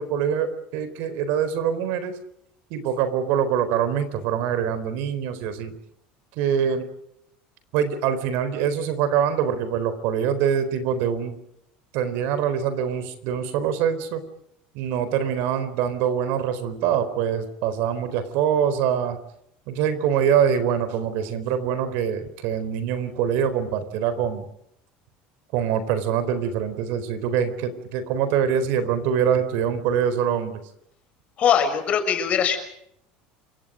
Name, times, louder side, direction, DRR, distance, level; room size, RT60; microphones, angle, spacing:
voice 1, 0.0-2.1 2.7-5.7 6.4-6.9 7.7-11.4 11.9-14.2 14.7-19.2 19.7-24.5 25.5-30.6, right 8 dB, 60° right, 12 dB, 4.3 m, -24 dB
voice 2, 31.4-32.6, left 8 dB, 35° left, 7 dB, 6.1 m, -21 dB
29.0 x 26.0 x 5.2 m, 0.74 s
cardioid pair, 165°, 4 cm